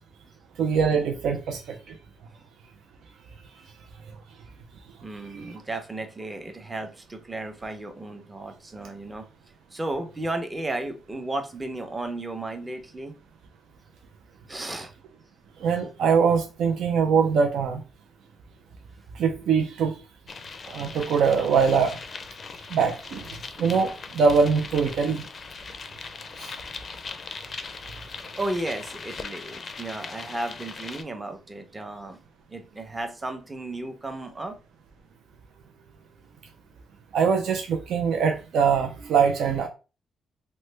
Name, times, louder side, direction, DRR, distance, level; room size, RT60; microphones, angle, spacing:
voice 1, 0.6-2.0 5.2-5.6 15.6-17.8 19.1-20.0 20.7-22.0 22.7-25.2 26.4-26.5 37.1-39.7, right 6 dB, 80° right, 0.4 m, -23 dB
voice 2, 5.0-9.2 9.7-13.1 14.5-14.9 28.4-32.2 32.5-34.6, right 2 dB, 20° right, 0.6 m, -34 dB
sound 1, 20.3-31.0, left 4 dB, 40° left, 0.4 m, -40 dB
3.1 x 2.1 x 3.2 m
cardioid pair, 105°, 0 cm